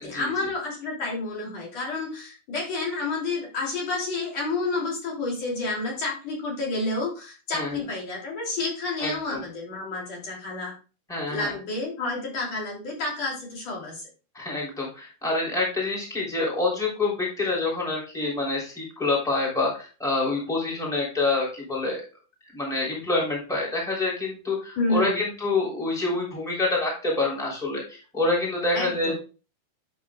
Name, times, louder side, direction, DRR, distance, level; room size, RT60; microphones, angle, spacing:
voice 1, 0.0-10.7 11.3-14.0 24.8-25.2 28.7-29.1, left 2 dB, 40° left, -2 dB, 3.6 m, -30 dB
voice 2, 9.0-9.4 11.1-11.5 14.3-22.0 22.5-29.2, left 3 dB, ahead, -4 dB, 2.3 m, -27 dB
9.5 x 7.2 x 2.3 m, 0.34 s
omnidirectional pair, 5.1 m